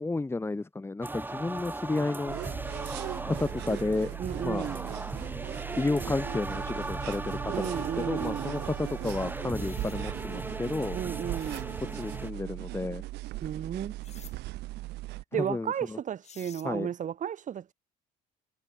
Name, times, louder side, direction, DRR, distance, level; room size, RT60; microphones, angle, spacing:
voice 1, 0.0-2.4 3.2-4.2 4.4-4.7 5.8-11.0 11.9-13.0 15.4-16.0 16.6-16.9, left 3 dB, 15° left, 2.1 m, -32 dB
sound 1, 1.0-12.3, right 2 dB, 10° right, 4.4 m, -38 dB
sound 2, 2.3-15.2, right 18 dB, 85° right, 1.6 m, -39 dB
voice 2, 4.2-4.9 7.5-8.6 10.9-11.8 13.4-14.0 15.3-17.7, right 9 dB, 50° right, 2.6 m, -34 dB
sound 3, 9.4-10.0 11.2-11.7 14.0-14.4 15.9-16.0 16.2-16.7, left 7 dB, 40° left, 4.8 m, -51 dB
cardioid pair, 110°, 17 cm